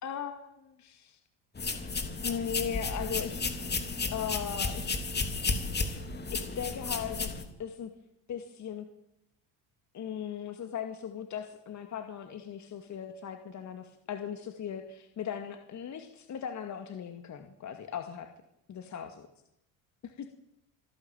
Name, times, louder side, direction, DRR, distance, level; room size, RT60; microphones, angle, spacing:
voice 1, 0.0-1.2 2.2-3.5 4.1-4.9 6.6-7.3 7.6-7.9 8.3-8.9 9.9-18.3 18.7-19.3 20.0-20.3, left 8 dB, 40° left, 6 dB, 2.4 m, -38 dB
sound 1, 1.6-7.4, left 4 dB, 25° left, 3.3 m, -33 dB
26.0 x 12.0 x 9.0 m, 0.81 s
supercardioid pair, 95°, 41 cm